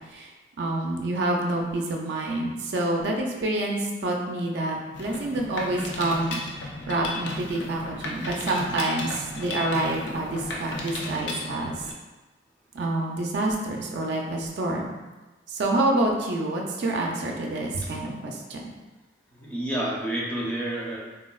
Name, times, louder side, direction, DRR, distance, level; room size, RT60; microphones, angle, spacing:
voice 1, 0.6-11.7 12.7-15.0 15.5-18.7, right 2 dB, 70° right, 0 dB, 0.4 m, -27 dB
Mechanisms, 4.9-11.9, left 2 dB, 90° left, 0.4 m, -35 dB
voice 2, 19.3-21.0, right 1 dB, 10° left, -5 dB, 0.5 m, -29 dB
3.7 x 2.0 x 2.3 m, 1.2 s
head